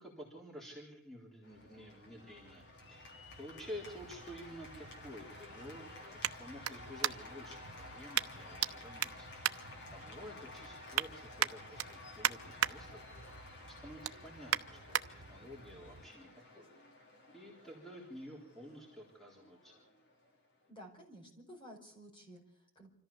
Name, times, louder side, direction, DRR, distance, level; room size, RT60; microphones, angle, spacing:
voice 1, 0.0-9.3 9.6-13.3 13.6-16.7 17.3-19.8, equal, ahead, -3 dB, 3.8 m, -51 dB
Cheering / Applause, 1.4-20.7, left 2 dB, 55° left, 3.7 m, -53 dB
sound 1, 1.5-16.1, right 1 dB, 70° right, 1.4 m, -57 dB
sound 2, 3.5-7.5 8.1-8.7 9.0-10.3 10.7-11.1 11.4-12.7 13.2-13.4 13.8-15.1 15.6-15.7, right 10 dB, 85° right, 0.9 m, -36 dB
voice 2, 20.7-22.9, equal, 25° left, 1 dB, 5.2 m, -54 dB
26.0 x 14.0 x 7.1 m, 0.70 s
head